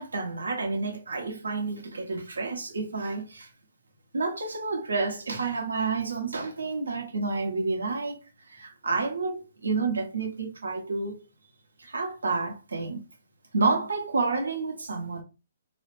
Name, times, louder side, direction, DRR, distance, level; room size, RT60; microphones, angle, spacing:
voice 1, 0.0-3.5 4.1-8.2 8.5-11.2 11.8-13.0 13.5-15.2, right 3 dB, 80° right, 0.9 m, -29 dB
3.8 x 2.0 x 3.1 m
hypercardioid pair, 135°, 0 cm